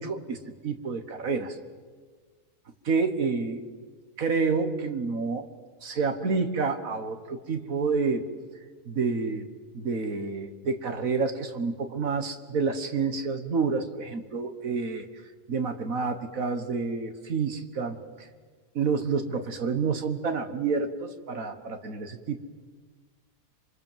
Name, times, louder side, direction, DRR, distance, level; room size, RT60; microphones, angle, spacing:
voice 1, 0.0-1.6 2.9-3.6 4.2-5.5 5.8-8.3 8.9-9.5 9.7-15.1 15.5-18.3 18.8-22.4, right 4 dB, 65° right, 8 dB, 1.9 m, -29 dB
27.5 x 25.0 x 7.5 m, 1.5 s
omnidirectional pair, 1.6 m